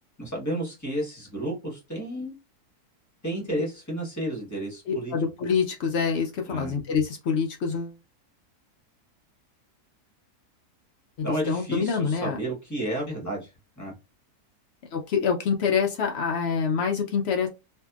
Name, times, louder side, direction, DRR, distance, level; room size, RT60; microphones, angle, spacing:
voice 1, 0.2-2.4 3.2-5.1 6.5-6.7 11.2-13.5 13.8-13.9, right 1 dB, 15° left, 0.9 m, -31 dB
voice 2, 4.9-8.0 11.2-12.4 14.9-17.5, left 6 dB, 80° left, 0.5 m, -26 dB
2.6 x 2.6 x 2.3 m
omnidirectional pair, 1.6 m